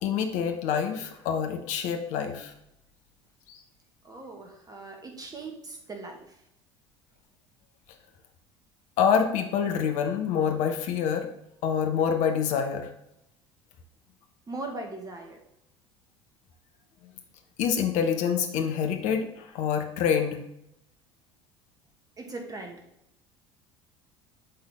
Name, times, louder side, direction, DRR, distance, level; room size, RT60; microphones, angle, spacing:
voice 1, 0.0-2.5 3.5-3.6 9.0-11.3 11.6-12.9 17.6-20.4, left 7 dB, 55° left, 4 dB, 1.2 m, -26 dB
voice 2, 4.0-6.2 14.5-15.4 22.2-22.8, right 2 dB, 25° right, 3 dB, 1.9 m, -39 dB
11.0 x 3.9 x 3.7 m, 0.81 s
figure-of-eight pair, 65°, 15 cm